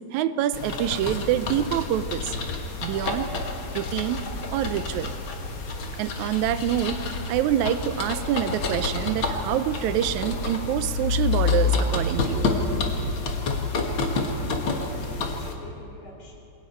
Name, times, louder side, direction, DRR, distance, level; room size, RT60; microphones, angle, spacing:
voice 1, 0.1-2.3 2.8-3.3 3.7-5.1 6.0-7.0 7.3-12.5, right 11 dB, 80° right, 13 dB, 2.0 m, -26 dB
sound 1, 0.5-15.5, left 3 dB, 50° left, 2.0 m, -28 dB
voice 2, 13.7-16.4, left 3 dB, 90° left, -1 dB, 4.8 m, -46 dB
27.5 x 22.0 x 4.4 m, 2.9 s
omnidirectional pair, 3.5 m